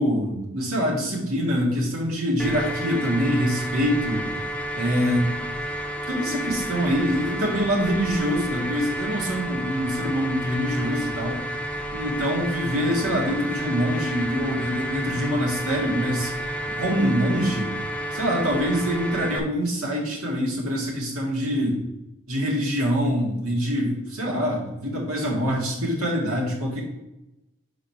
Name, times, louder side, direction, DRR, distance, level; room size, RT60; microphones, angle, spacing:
voice 1, 0.0-4.3 4.8-5.3 6.1-11.4 11.9-16.3 16.8-17.8 18.1-21.8 22.3-26.8, equal, 85° right, -2 dB, 1.9 m, -25 dB
sound 1, 2.4-19.4, equal, 5° left, 0.5 m, -31 dB
5.0 x 4.0 x 5.8 m, 0.93 s
head